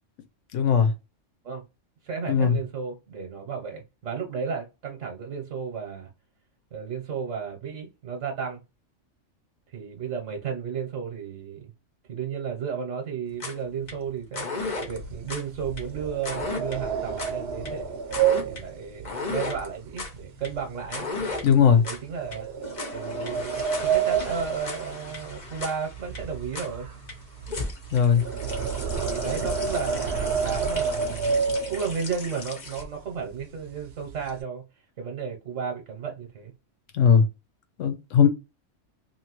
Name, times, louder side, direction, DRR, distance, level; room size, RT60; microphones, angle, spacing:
voice 1, 0.5-0.9 2.3-2.6 21.4-21.8 27.9-28.2 36.9-37.3 37.8-38.3, left 7 dB, 90° left, 1.1 m, -18 dB
voice 2, 2.0-6.1 6.7-8.6 9.7-11.6 12.1-18.0 18.4-21.0 21.8-22.5 22.9-26.9 29.0-31.4 31.7-34.6 35.0-36.5, right 6 dB, 90° right, 1.3 m, -33 dB
sound 1, 13.3-32.8, left 3 dB, 40° left, 0.9 m, -36 dB
sound 2, 14.9-20.2 20.5-20.9 21.4-21.5 22.3-25.6 25.9-32.2 32.8-32.9 33.2-33.4 33.7-34.4, right 6 dB, 65° right, 0.8 m, -29 dB
2.9 x 2.7 x 2.9 m
omnidirectional pair, 1.2 m